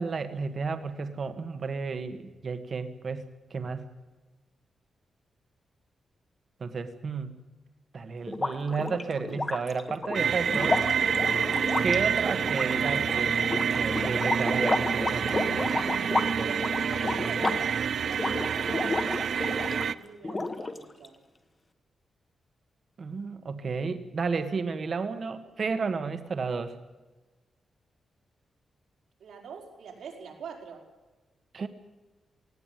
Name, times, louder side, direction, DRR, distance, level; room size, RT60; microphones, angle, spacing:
voice 1, 0.0-3.2 3.5-3.9 6.6-7.3 7.9-10.8 11.8-13.5 13.8-15.7 23.0-26.8 31.5-31.7, right 4 dB, 40° right, 10 dB, 1.4 m, -32 dB
sound 1, 8.3-19.9 20.2-21.1, left 2 dB, 20° left, 1.3 m, -32 dB
sound 2, 10.1-19.9, right 7 dB, 60° right, 0.6 m, -27 dB
voice 2, 16.4-17.8 18.1-19.1 19.8-21.2 29.2-30.9, right 6 dB, 85° right, 2 dB, 4.9 m, -44 dB
19.0 x 17.0 x 9.1 m, 1.2 s
wide cardioid pair, 165°, 0 cm